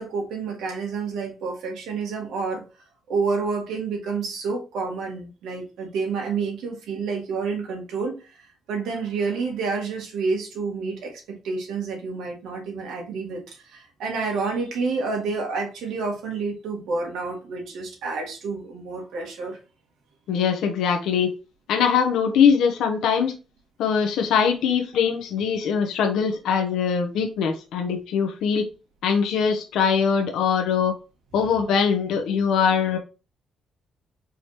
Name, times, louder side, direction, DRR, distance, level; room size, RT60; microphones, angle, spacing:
voice 1, 0.0-2.6 3.1-8.2 8.7-19.6, right 4 dB, 85° right, 2.0 m, -29 dB
voice 2, 20.3-21.3 21.7-23.3 23.8-28.7 29.0-30.9 31.3-33.0, left 6 dB, 85° left, 0.9 m, -22 dB
4.8 x 3.5 x 2.9 m
cardioid pair, 115°, 0 cm